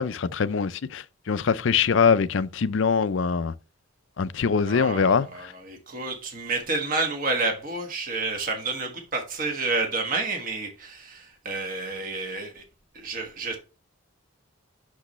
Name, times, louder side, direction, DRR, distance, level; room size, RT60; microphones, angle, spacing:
voice 1, 0.0-3.5 4.2-5.5, left 6 dB, 60° left, 0.5 m, -23 dB
voice 2, 4.7-12.6 12.9-13.6, right 3 dB, 40° right, 1.3 m, -30 dB
8.2 x 6.4 x 3.1 m
head